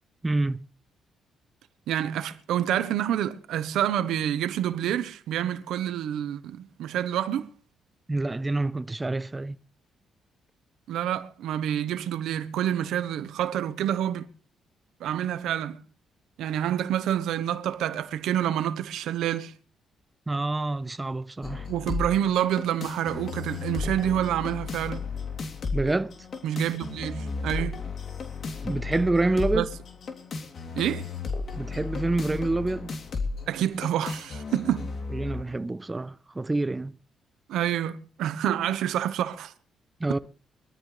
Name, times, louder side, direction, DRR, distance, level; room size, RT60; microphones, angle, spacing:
voice 1, 0.2-0.7 8.1-9.6 20.3-21.7 25.7-26.1 28.6-29.7 31.6-32.9 35.1-36.9 40.0-40.2, right 2 dB, 20° right, 0.9 m, -27 dB
voice 2, 1.9-7.5 10.9-14.3 15.0-15.8 16.4-19.5 21.7-25.0 26.4-27.8 29.5-29.6 30.8-31.1 33.5-34.9 37.5-39.5, right 11 dB, 80° right, 1.2 m, -28 dB
sound 1, 21.4-35.4, left 4 dB, 50° left, 3.3 m, -34 dB
23.0 x 13.5 x 3.4 m
cardioid pair, 90°, 0 cm